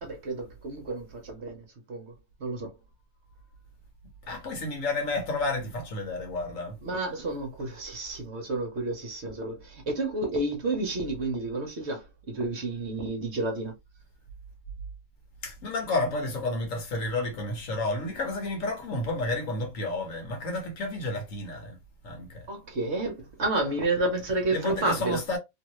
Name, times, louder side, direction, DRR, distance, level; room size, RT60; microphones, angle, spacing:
voice 1, 0.0-2.1 2.4-2.7 6.8-13.7 22.5-25.2, right 2 dB, 55° right, 1.2 m, -30 dB
voice 2, 4.3-6.8 15.4-21.8 22.0-22.5 24.5-25.4, left 2 dB, 65° left, 1.4 m, -31 dB
3.1 x 2.7 x 3.0 m
omnidirectional pair, 1.5 m